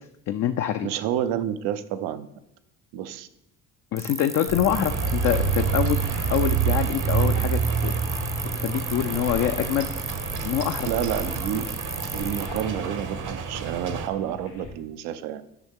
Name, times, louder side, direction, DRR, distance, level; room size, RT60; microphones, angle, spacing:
voice 1, 0.3-0.9 3.9-7.9 8.5-9.9 10.4-10.9, left 10 dB, 45° left, 8 dB, 0.4 m, -25 dB
voice 2, 0.8-2.3 2.9-3.3 10.9-11.7 12.1-15.4, right 10 dB, 80° right, 12 dB, 0.6 m, -29 dB
sound 1, 4.0-12.6, right 2 dB, 10° right, 0.5 m, -35 dB
sound 2, 4.5-14.7, left 3 dB, 85° left, 1.7 m, -38 dB
sound 3, 4.7-14.1, right 7 dB, 50° right, 0.8 m, -28 dB
8.1 x 5.6 x 3.6 m, 0.85 s
hypercardioid pair, 60°, 38 cm